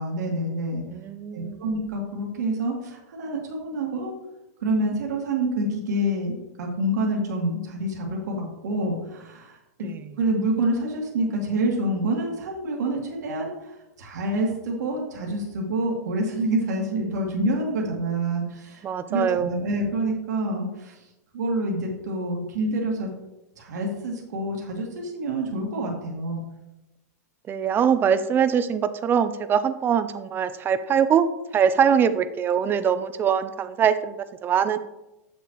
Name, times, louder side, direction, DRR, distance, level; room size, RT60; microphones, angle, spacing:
voice 1, 0.0-0.8 1.3-4.1 4.6-9.9 10.2-13.7 14.0-18.8 19.1-21.0 21.3-23.1 23.6-26.4, right 1 dB, 75° right, -1 dB, 1.9 m, -27 dB
voice 2, 0.9-1.6 9.8-10.1 18.8-19.6 27.5-31.3 31.5-34.8, right 7 dB, 20° right, 12 dB, 0.5 m, -23 dB
7.3 x 7.0 x 3.1 m, 0.95 s
hypercardioid pair, 130°, 9 cm